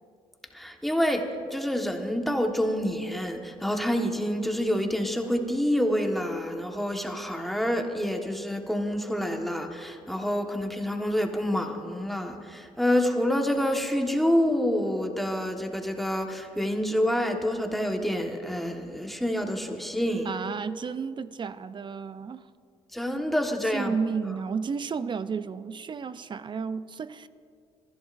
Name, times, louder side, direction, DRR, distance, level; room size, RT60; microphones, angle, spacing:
voice 1, 0.5-20.3 22.9-23.9, equal, ahead, 3 dB, 1.5 m, -27 dB
voice 2, 20.3-22.5 23.7-27.3, right 5 dB, 40° right, 14 dB, 0.5 m, -32 dB
28.0 x 11.0 x 2.6 m, 2.3 s
supercardioid pair, 70°, 13 cm